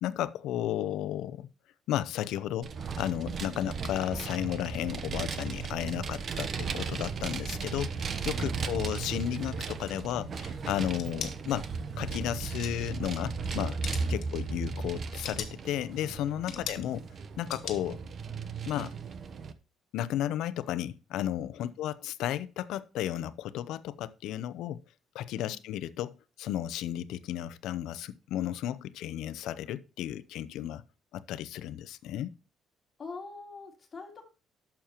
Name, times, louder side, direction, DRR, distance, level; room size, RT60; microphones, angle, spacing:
voice 1, 0.0-1.5 1.9-11.7 12.0-13.8 14.1-17.0 17.4-18.0 18.7-18.9 19.9-24.8 25.1-30.8 31.1-32.3, left 12 dB, 80° left, 0.7 m, -33 dB
Vehicle, 2.6-19.5, right 5 dB, 40° right, 0.9 m, -36 dB
voice 2, 8.3-8.7 14.0-14.1 21.6-21.7 25.3-25.6 33.0-34.3, left 3 dB, 30° left, 3.3 m, -46 dB
sound 1, 10.9-11.3 12.4-12.9 13.3-13.6 13.8-14.3 15.0-15.6 16.5-16.9 17.5-17.8, left 8 dB, 60° left, 1.9 m, -38 dB
11.5 x 7.2 x 3.0 m
cardioid pair, 135°, 0 cm